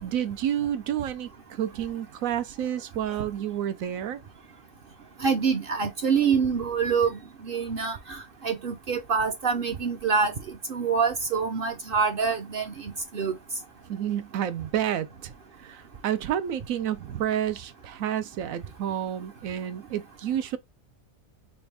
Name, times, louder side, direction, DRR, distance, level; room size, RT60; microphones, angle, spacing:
voice 1, 0.0-4.2 13.9-15.3 15.6-20.6, right 10 dB, 80° right, 1.1 m, -30 dB
voice 2, 5.2-13.4, right 5 dB, 55° right, 0.7 m, -26 dB
5.2 x 2.4 x 3.4 m
omnidirectional pair, 1.4 m